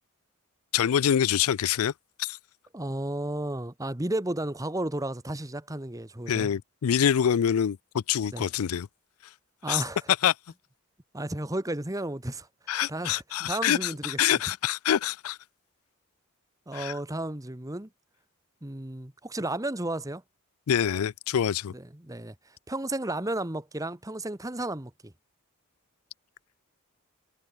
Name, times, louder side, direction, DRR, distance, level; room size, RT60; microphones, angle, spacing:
voice 1, 0.7-1.9 2.2-2.4 6.3-8.9 9.7-9.8 10.2-10.3 12.7-15.4 16.7-17.0 20.7-21.7, left 9 dB, 85° left, 0.4 m, -25 dB
voice 2, 2.7-6.5 8.3-8.5 9.6-10.0 11.1-12.5 12.9-14.4 16.7-17.9 18.6-20.2 21.7-22.3 22.7-25.1, right 1 dB, 15° right, 1.3 m, -33 dB
head